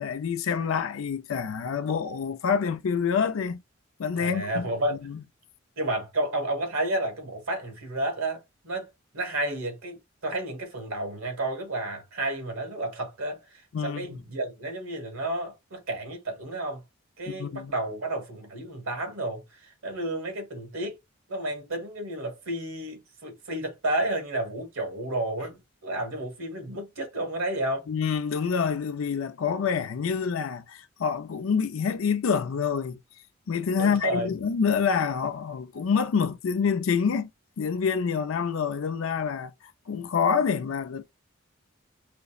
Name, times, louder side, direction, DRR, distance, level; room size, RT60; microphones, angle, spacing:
voice 1, 0.0-3.6 4.0-5.2 13.7-14.2 17.3-17.7 27.9-33.0 33.5-37.3 37.6-41.0, left 6 dB, 80° left, 0.4 m, -27 dB
voice 2, 4.2-5.0 5.8-16.8 17.2-21.0 21.3-27.9 33.8-34.3, right 1 dB, 90° right, 1.4 m, -31 dB
5.1 x 2.0 x 2.3 m
head